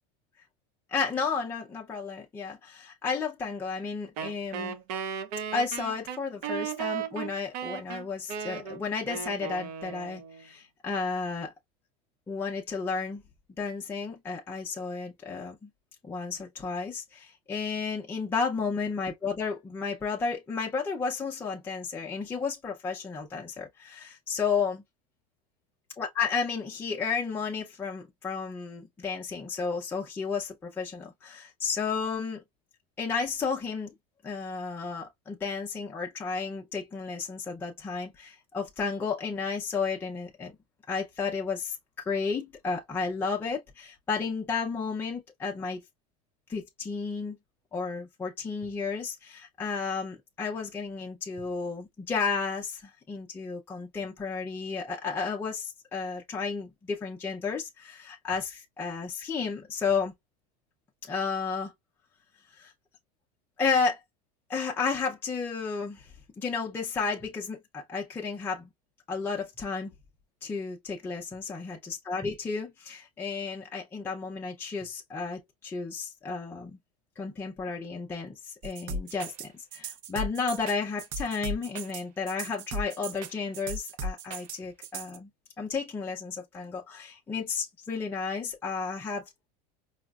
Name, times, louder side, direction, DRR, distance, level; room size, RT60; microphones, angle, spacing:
voice 1, 0.9-4.8 5.5-11.5 12.3-13.2 13.6-15.7 16.0-24.8 26.0-32.4 33.0-33.9 34.2-40.5 40.9-41.8 42.1-45.8 46.5-47.4 47.7-60.1 61.1-61.7 62.6-62.7 63.6-64.0 64.5-66.0 66.4-68.7 69.1-69.9 70.4-76.8 77.2-85.3 85.6-89.2, left 5 dB, 10° left, 0.5 m, -32 dB
Wind instrument woodwind instrument, 4.2-10.5, right 8 dB, 70° right, 0.8 m, -36 dB
sound 1, 78.6-85.2, right 1 dB, 40° right, 0.6 m, -36 dB
4.8 x 2.1 x 2.3 m
supercardioid pair, 155°, 20 cm